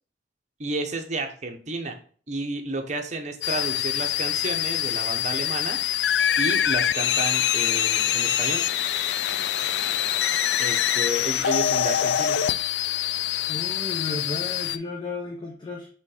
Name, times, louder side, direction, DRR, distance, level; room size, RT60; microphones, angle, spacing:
voice 1, 0.6-1.9 2.3-5.8 6.4-8.6 10.6-12.4, right 2 dB, 40° right, 4 dB, 0.9 m, -31 dB
sound 1, 3.4-14.8, left 10 dB, 65° left, 0.3 m, -24 dB
voice 2, 13.5-15.9, left 3 dB, 25° left, -1 dB, 0.8 m, -33 dB
5.4 x 3.6 x 4.8 m, 0.44 s
head